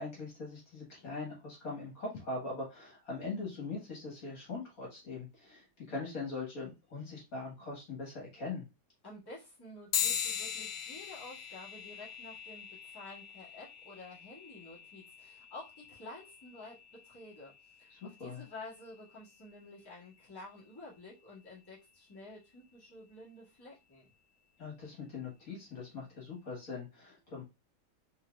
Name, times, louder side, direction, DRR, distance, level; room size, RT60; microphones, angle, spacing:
voice 1, 0.0-8.6 17.9-18.4 24.6-27.4, left 3 dB, 60° left, -3 dB, 2.0 m, -41 dB
voice 2, 9.0-17.5 17.8-24.1, left 2 dB, 15° left, -8 dB, 1.8 m, -50 dB
sound 1, 9.9-19.8, left 8 dB, 85° left, 1.3 m, -41 dB
4.5 x 3.1 x 2.4 m, 0.25 s
omnidirectional pair, 1.7 m